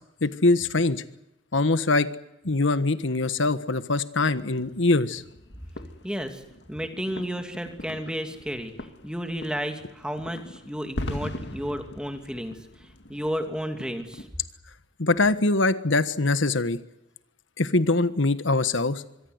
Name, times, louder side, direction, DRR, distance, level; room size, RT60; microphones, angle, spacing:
voice 1, 0.2-1.0 1.5-2.1 2.4-5.2 15.0-16.8 17.6-19.0, left 2 dB, 85° left, 12 dB, 1.4 m, -23 dB
sound 1, 4.3-14.2, left 1 dB, 65° left, 2.3 m, -41 dB
voice 2, 6.0-6.4 6.7-8.7 9.0-14.3, equal, 5° right, 6 dB, 2.6 m, -32 dB
25.5 x 22.5 x 8.1 m, 0.87 s
head